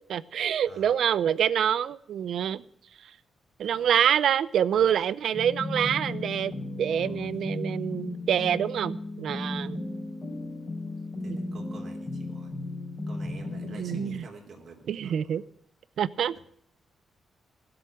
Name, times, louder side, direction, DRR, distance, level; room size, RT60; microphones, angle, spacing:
voice 1, 0.1-2.6 3.6-6.5 6.8-9.8 11.3-11.4 13.6-14.2 14.9-15.4 16.0-16.4, right 9 dB, 75° right, 18 dB, 0.6 m, -26 dB
voice 2, 0.6-1.0 3.6-3.9 4.7-5.0 7.1-7.3 9.5-9.7 11.2-12.5 13.1-15.4 16.3-16.4, right 3 dB, 55° right, 2 dB, 3.3 m, -48 dB
sound 1, 5.3-14.1, left 2 dB, 25° left, 3.9 m, -35 dB
17.0 x 7.9 x 7.8 m, 0.68 s
cardioid pair, 120°, 0 cm